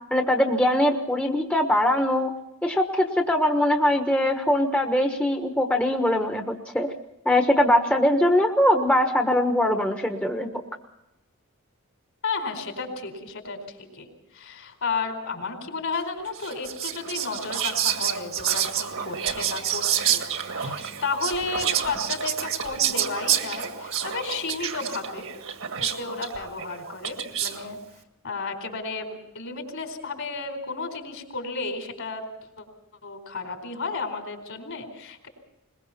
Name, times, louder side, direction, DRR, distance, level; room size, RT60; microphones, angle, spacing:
voice 1, 0.1-2.3 2.6-6.9 7.2-10.5, left 1 dB, 5° left, 4 dB, 1.2 m, -22 dB
voice 2, 12.2-14.1 14.3-20.2 20.5-25.3 25.8-27.8 28.2-32.2 32.6-32.7 33.0-35.3, left 4 dB, 60° left, 5 dB, 4.2 m, -33 dB
Whispering, 16.3-27.7, right 9 dB, 60° right, 1.8 m, -28 dB
21.5 x 21.0 x 5.8 m, 0.91 s
head